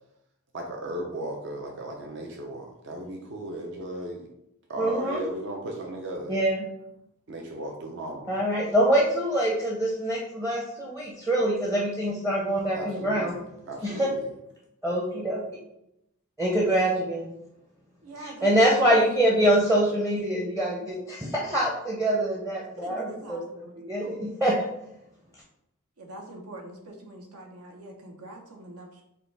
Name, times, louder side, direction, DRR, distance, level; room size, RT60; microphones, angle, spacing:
voice 1, 0.5-4.3 4.7-6.4 7.3-8.4 12.7-14.3, right 1 dB, 55° right, 1 dB, 0.6 m, -36 dB
voice 2, 4.8-5.3 6.3-6.6 8.3-13.3 13.8-14.1 14.8-15.4 16.4-17.3 18.2-23.4 23.9-24.6, right 1 dB, 10° right, -3 dB, 0.6 m, -24 dB
voice 3, 18.0-19.2 22.8-23.8 26.0-29.0, right 2 dB, 80° right, 2 dB, 0.9 m, -43 dB
6.6 x 2.3 x 3.3 m, 0.82 s
head